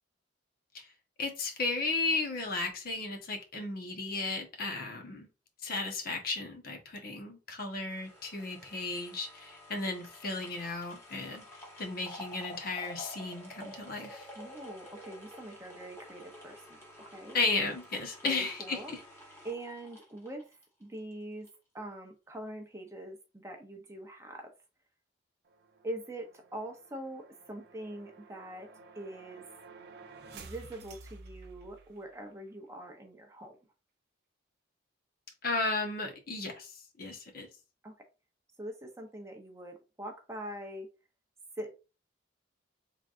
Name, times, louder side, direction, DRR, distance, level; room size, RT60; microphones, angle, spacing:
voice 1, 1.2-5.3 5.6-11.4 11.8-14.2 17.3-19.0 35.4-37.5, left 3 dB, 50° left, 2 dB, 1.0 m, -34 dB
sound 1, 7.9-21.1 21.5-21.6, left 1 dB, 15° left, 1.3 m, -50 dB
voice 2, 14.4-16.8 17.0-17.4 18.2-18.9 19.4-21.5 21.7-24.5 25.8-29.4 30.3-33.6 37.8-38.0 38.6-40.9 41.6-41.8, right 1 dB, 15° right, 3 dB, 0.6 m, -43 dB
sound 2, 25.5-32.2, right 3 dB, 55° right, 0.6 m, -52 dB
3.9 x 3.3 x 2.5 m, 0.30 s
head